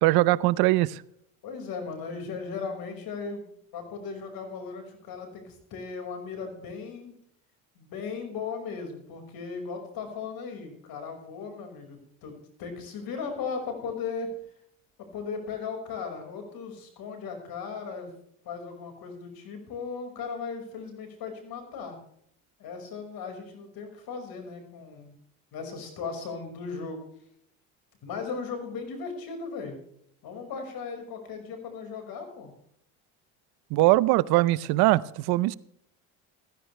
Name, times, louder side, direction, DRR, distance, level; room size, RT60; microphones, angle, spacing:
voice 1, 0.0-1.0 33.7-35.6, right 18 dB, 75° right, 20 dB, 0.7 m, -21 dB
voice 2, 1.4-3.5 3.7-7.1 7.8-14.3 15.0-18.1 18.4-22.0 22.6-25.1 25.5-27.0 28.0-29.8 30.2-32.5, left 5 dB, 70° left, 5 dB, 5.5 m, -37 dB
15.0 x 15.0 x 3.3 m, 0.68 s
supercardioid pair, 80°, 37 cm